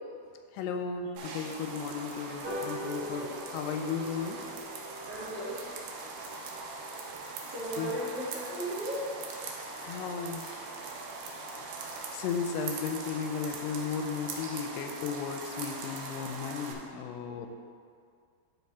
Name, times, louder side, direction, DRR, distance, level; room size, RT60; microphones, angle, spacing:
voice 1, 0.5-4.4 7.8-7.9 9.5-9.6 9.8-10.7 12.1-17.5, left 6 dB, 90° left, 5 dB, 2.7 m, -35 dB
sound 1, 1.2-16.7, right 3 dB, 80° right, 1.8 m, -41 dB
sound 2, 2.4-9.2 9.6-9.7 10.0-10.1 10.4-10.5 10.8-10.9 11.2-11.5 11.9-12.0, equal, 40° right, 1.3 m, -45 dB
voice 2, 2.8-3.3 5.0-5.7 7.5-9.1 17.3-17.5, right 1 dB, 65° right, -11 dB, 1.4 m, -37 dB
11.5 x 4.4 x 3.6 m, 2.2 s
omnidirectional pair, 4.8 m